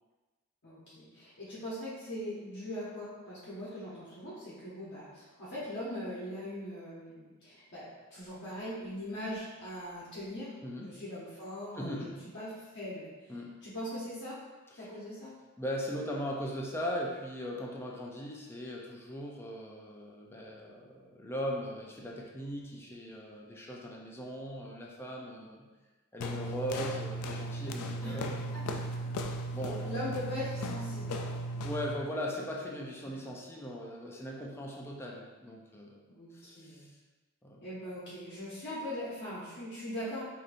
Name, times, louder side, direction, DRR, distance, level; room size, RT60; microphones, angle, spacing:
voice 1, 0.6-10.5 10.8-13.1 13.6-14.4 14.7-15.3 28.0-28.2 28.5-29.1 29.8-31.4 32.7-33.1 36.1-36.8 37.6-40.2, left 1 dB, 55° left, -8 dB, 0.9 m, -41 dB
voice 2, 10.6-11.0 11.7-12.2 13.3-13.6 14.7-14.9 15.6-25.7 26.1-28.6 29.5-30.0 31.6-36.0 36.3-36.9 37.4-37.6, equal, 10° left, -2 dB, 0.4 m, -39 dB
sound 1, 26.2-32.0, right 1 dB, 85° left, 0.3 m, -36 dB
4.7 x 2.7 x 2.5 m, 1.2 s
head